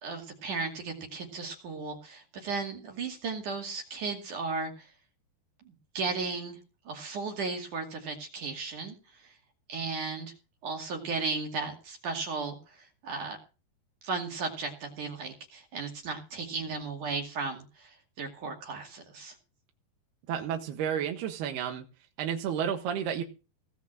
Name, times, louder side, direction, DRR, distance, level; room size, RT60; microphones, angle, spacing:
voice 1, 0.0-4.9 5.7-6.6 6.9-9.4 9.7-10.3 10.6-13.4 14.0-19.4, right 4 dB, 50° right, 2 dB, 3.6 m, -35 dB
voice 2, 20.3-21.8 22.2-23.2, right 8 dB, 75° right, 4 dB, 3.4 m, -31 dB
18.0 x 6.1 x 7.5 m, 0.32 s
omnidirectional pair, 4.8 m